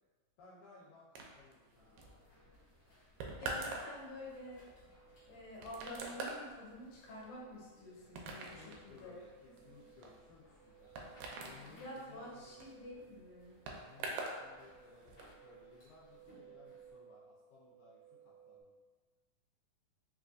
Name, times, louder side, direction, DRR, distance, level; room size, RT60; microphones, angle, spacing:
voice 1, 0.4-2.2 8.3-10.9 11.3-12.6 13.7-18.7, left 4 dB, 80° left, -6 dB, 2.0 m, -61 dB
sound 1, 1.1-14.4 14.7-15.3, right 3 dB, 80° right, 1.9 m, -46 dB
sound 2, 1.7-16.9, left 2 dB, 45° left, 1.2 m, -66 dB
voice 2, 3.4-4.6 5.3-9.2 11.7-13.6, left 1 dB, 65° left, -6 dB, 2.1 m, -49 dB
sound 3, 4.4-18.6, right 8 dB, 65° right, 1.5 m, -62 dB
4.7 x 2.5 x 2.4 m, 1.3 s
omnidirectional pair, 3.5 m